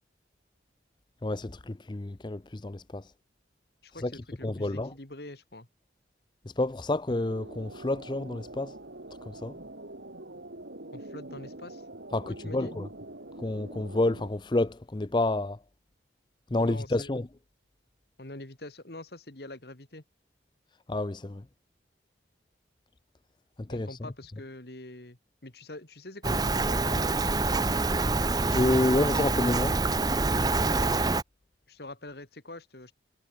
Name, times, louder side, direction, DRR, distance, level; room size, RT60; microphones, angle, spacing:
voice 1, 1.2-3.1 4.0-4.9 6.6-8.7 9.3-9.5 12.1-12.9 13.4-15.6 16.5-17.3 20.9-21.4 23.7-23.9 28.5-29.8, left 2 dB, 25° left, 0.5 m, -29 dB
voice 2, 3.8-5.7 10.9-11.8 12.1-12.7 16.6-17.1 18.2-20.0 23.7-27.2 31.7-32.9, left 2 dB, 60° left, 2.4 m, -44 dB
sound 1, 7.1-14.3, right 1 dB, 70° right, 2.9 m, -44 dB
Rain, 26.2-31.2, right 3 dB, 20° right, 0.8 m, -26 dB
head